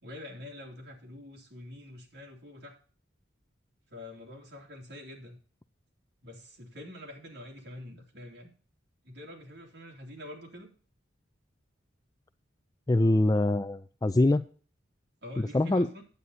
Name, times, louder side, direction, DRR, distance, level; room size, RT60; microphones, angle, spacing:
voice 1, 0.0-2.7 3.9-5.4 6.2-8.5 9.0-10.7 15.2-16.0, left 1 dB, 55° right, 0 dB, 2.9 m, -46 dB
voice 2, 12.9-14.4 15.4-15.9, left 2 dB, 20° left, 10 dB, 0.4 m, -24 dB
9.6 x 8.6 x 4.1 m, 0.39 s
head